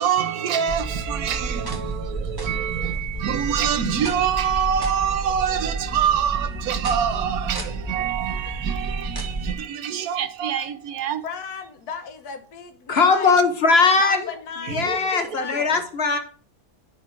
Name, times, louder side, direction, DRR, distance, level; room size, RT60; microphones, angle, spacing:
voice 1, 0.0-11.2 14.7-15.4, right 8 dB, 70° right, 1.2 m, -25 dB
sound 1, 0.7-9.5, right 3 dB, 20° right, 0.9 m, -31 dB
voice 2, 11.2-13.4 14.0-15.8, left 6 dB, 75° left, 1.6 m, -36 dB
voice 3, 12.9-14.3 14.7-16.2, left 4 dB, 50° left, 1.0 m, -19 dB
9.8 x 4.0 x 4.6 m
omnidirectional pair, 1.7 m